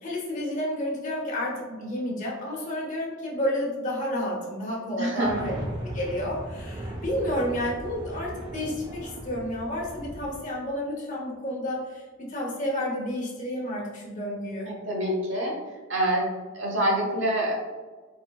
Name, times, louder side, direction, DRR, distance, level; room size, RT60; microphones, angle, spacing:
voice 1, 0.0-5.5 5.8-12.0 12.3-14.7, left 1 dB, 40° left, -3 dB, 0.9 m, -30 dB
voice 2, 5.0-5.5 14.7-15.5 15.9-16.3 16.5-17.5, right 1 dB, 65° right, -2 dB, 1.1 m, -26 dB
sound 1, 5.2-10.3, right 1 dB, 20° right, 0.4 m, -37 dB
4.4 x 3.2 x 2.2 m, 1.4 s
head